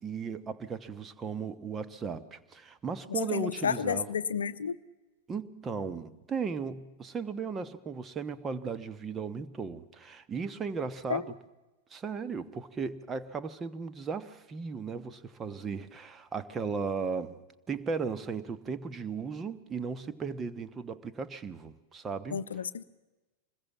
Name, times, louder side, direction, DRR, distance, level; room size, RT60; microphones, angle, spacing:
voice 1, 0.0-4.1 5.3-11.3 11.9-22.4, right 5 dB, 20° right, 1.2 m, -36 dB
voice 2, 3.1-4.7 11.1-11.2 22.3-22.8, left 7 dB, 70° left, 0.7 m, -31 dB
25.5 x 21.0 x 7.3 m
figure-of-eight pair, 90°, 0 cm